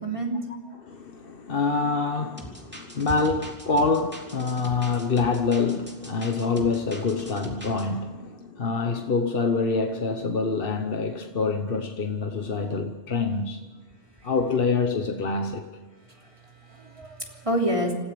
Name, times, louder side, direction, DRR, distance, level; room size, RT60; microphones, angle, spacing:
voice 1, 0.0-0.4 16.2-17.9, right 1 dB, 30° right, 3.4 m, -28 dB
voice 2, 0.8-13.6 14.2-15.7, left 4 dB, 60° left, 1.3 m, -26 dB
sound 1, 2.4-7.9, equal, 10° right, 3.2 m, -42 dB
26.5 x 15.5 x 6.9 m
omnidirectional pair, 1.1 m